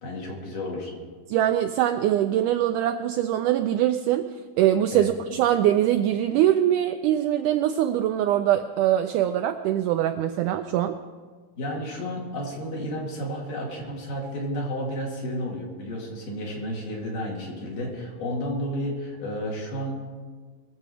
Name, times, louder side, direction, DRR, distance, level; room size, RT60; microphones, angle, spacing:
voice 1, 0.0-0.9 4.9-5.1 11.6-20.1, equal, 65° left, -2 dB, 4.1 m, -32 dB
voice 2, 1.3-11.0, right 11 dB, 85° right, 7 dB, 1.8 m, -23 dB
21.5 x 7.5 x 4.9 m, 1.5 s
omnidirectional pair, 4.1 m